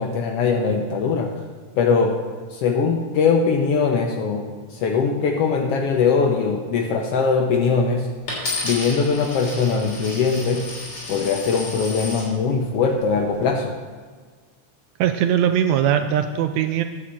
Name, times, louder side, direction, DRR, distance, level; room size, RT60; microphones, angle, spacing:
voice 1, 0.0-1.3 1.8-2.2 2.5-8.1 8.6-10.7 11.1-13.8, left 5 dB, 80° left, 3 dB, 1.3 m, -21 dB
Coin (dropping), 8.3-12.3 13.0-13.4, left 2 dB, 45° left, 4.1 m, -32 dB
voice 2, 15.0-16.8, right 9 dB, 80° right, 8 dB, 1.6 m, -20 dB
10.0 x 5.7 x 7.4 m, 1.5 s
omnidirectional pair, 3.5 m